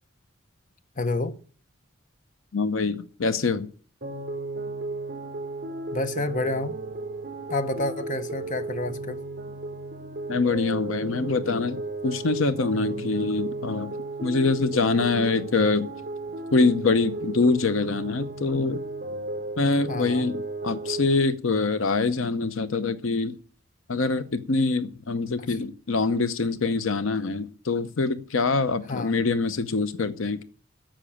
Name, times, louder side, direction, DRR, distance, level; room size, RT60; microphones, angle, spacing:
voice 1, 1.0-1.4 5.9-6.8 7.5-9.2 19.9-20.3 25.4-25.6 28.9-29.1, left 2 dB, 40° left, 0.9 m, -29 dB
voice 2, 2.5-3.7 10.3-13.9 14.2-15.9 16.5-18.8 19.6-20.4 20.6-23.4 23.9-30.4, left 3 dB, 75° left, 0.7 m, -24 dB
sound 1, 4.0-21.1, right 2 dB, 45° right, 3.5 m, -34 dB
10.0 x 7.4 x 8.7 m
head